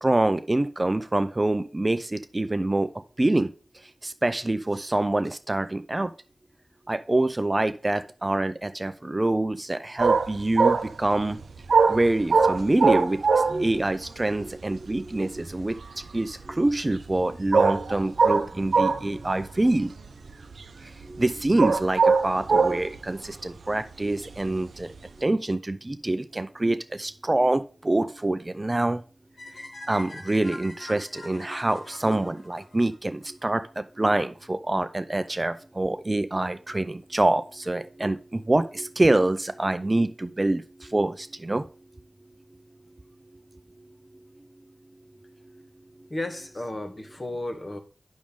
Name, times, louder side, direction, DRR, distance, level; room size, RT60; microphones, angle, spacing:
voice 1, 0.0-2.9 3.2-3.5 4.0-6.1 6.9-11.4 11.9-19.9 20.8-24.9 25.2-29.0 29.9-41.6, right 2 dB, 30° right, 0.5 m, -26 dB
sound 1, 10.0-13.8 14.1-14.2 14.4-15.4 15.6-16.5 17.0-17.2 17.5-19.5 19.9-20.6 21.0-23.0 24.3-25.0, right 4 dB, 85° right, 0.5 m, -22 dB
sound 2, 29.4-33.5, left 2 dB, 80° left, 1.7 m, -43 dB
voice 2, 46.1-47.8, left 1 dB, 35° left, 1.2 m, -33 dB
8.7 x 6.2 x 3.7 m
cardioid pair, 50°, 0 cm